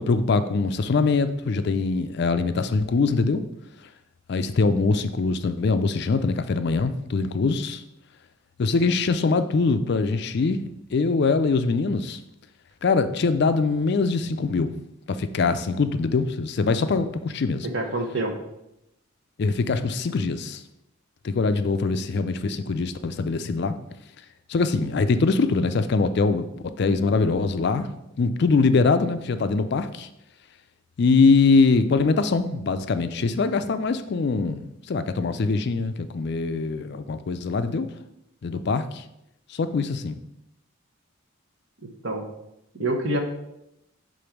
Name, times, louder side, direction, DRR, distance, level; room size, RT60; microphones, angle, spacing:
voice 1, 0.0-3.5 4.3-7.8 8.6-10.6 10.9-12.2 12.8-14.7 15.1-17.7 19.4-20.6 21.2-23.7 24.5-26.5 26.8-27.9 28.2-30.1 31.0-37.9 38.4-39.0 39.5-40.2, left 4 dB, 50° left, 10 dB, 0.4 m, -23 dB
voice 2, 17.7-18.3 42.0-42.3 42.7-43.2, right 1 dB, 60° right, 4 dB, 1.0 m, -26 dB
5.2 x 3.8 x 5.8 m, 0.84 s
head